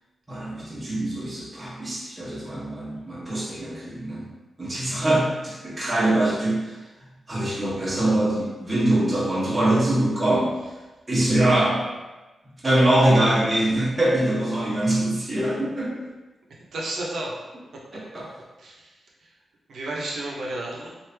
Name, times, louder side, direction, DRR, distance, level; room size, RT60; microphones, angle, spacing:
voice 1, 0.3-4.3 4.6-6.7 7.3-10.5 11.1-11.8 12.6-16.1 17.9-18.3, right 1 dB, 25° right, -8 dB, 1.1 m, -23 dB
voice 2, 16.7-17.4 17.7-17.8 18.1-18.2 18.6-18.9 19.7-21.0, right 2 dB, 85° right, -3 dB, 0.8 m, -32 dB
3.1 x 2.6 x 3.3 m, 1.1 s
wide cardioid pair, 110°, 0 cm